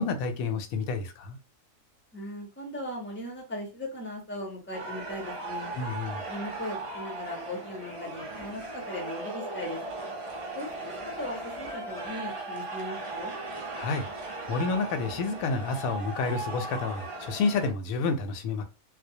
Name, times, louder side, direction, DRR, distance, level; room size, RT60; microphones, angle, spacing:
voice 1, 0.0-1.4 5.8-6.2 13.8-14.1 14.5-18.6, left 4 dB, 90° left, 1.0 m, -29 dB
voice 2, 2.1-5.7 6.3-9.8 10.5-13.3, left 1 dB, 15° left, 0.5 m, -38 dB
sound 1, 4.7-17.7, right 2 dB, 55° right, 0.3 m, -37 dB
2.3 x 2.1 x 2.6 m
omnidirectional pair, 1.4 m